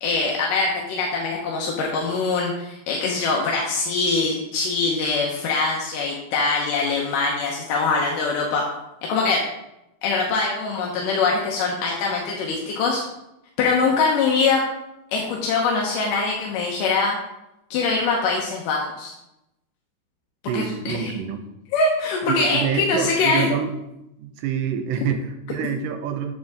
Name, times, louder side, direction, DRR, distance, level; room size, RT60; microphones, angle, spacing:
voice 1, 0.0-8.6 9.1-9.4 10.0-13.0 13.6-14.6 15.1-17.2 17.7-19.1 20.5-21.1 21.7-23.5, left 4 dB, 80° left, -1 dB, 2.6 m, -23 dB
voice 2, 20.5-21.4 22.2-23.8 24.2-26.4, right 7 dB, 85° right, 7 dB, 2.4 m, -26 dB
9.2 x 7.2 x 3.6 m, 0.88 s
omnidirectional pair, 3.8 m